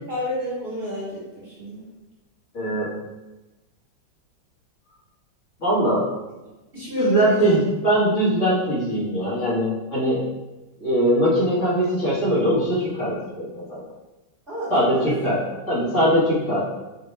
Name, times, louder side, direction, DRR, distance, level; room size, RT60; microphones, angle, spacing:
voice 1, 0.1-1.8 6.7-7.6 14.5-15.1, left 1 dB, 35° right, -9 dB, 1.4 m, -29 dB
voice 2, 2.5-2.9 5.6-6.1 7.0-10.2 10.8-13.8 14.7-15.4 15.7-16.6, equal, 40° left, -10 dB, 1.9 m, -21 dB
5.2 x 3.0 x 3.2 m, 1.1 s
omnidirectional pair, 2.0 m